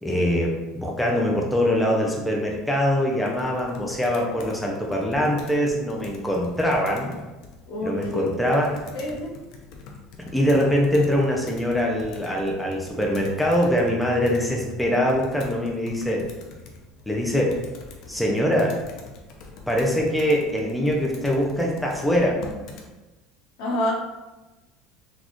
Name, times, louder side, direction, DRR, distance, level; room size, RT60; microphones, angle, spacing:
voice 1, 0.0-7.1 7.8-8.8 10.2-16.3 17.1-17.6 18.1-18.8 19.7-22.4, equal, ahead, -2 dB, 0.5 m, -23 dB
Computer keyboard, 3.2-22.9, left 2 dB, 55° left, 0.6 m, -44 dB
voice 2, 7.7-8.2 8.9-9.3 23.6-23.9, left 1 dB, 75° left, -3 dB, 1.0 m, -27 dB
4.0 x 2.4 x 3.0 m, 1.1 s
cardioid pair, 140°, 0 cm